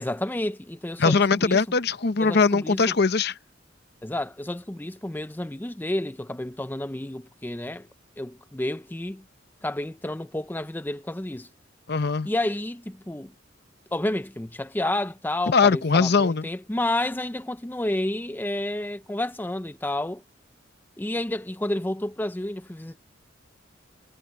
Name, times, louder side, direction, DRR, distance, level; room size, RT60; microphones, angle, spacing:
voice 1, 0.0-1.6 2.2-3.0 4.0-7.9 8.2-9.2 9.6-11.5 12.2-13.3 13.9-20.2 21.0-23.0, left 1 dB, 10° left, 0.5 m, -30 dB
voice 2, 1.0-3.3 11.9-12.3 15.5-16.5, left 4 dB, 55° left, 0.7 m, -21 dB
head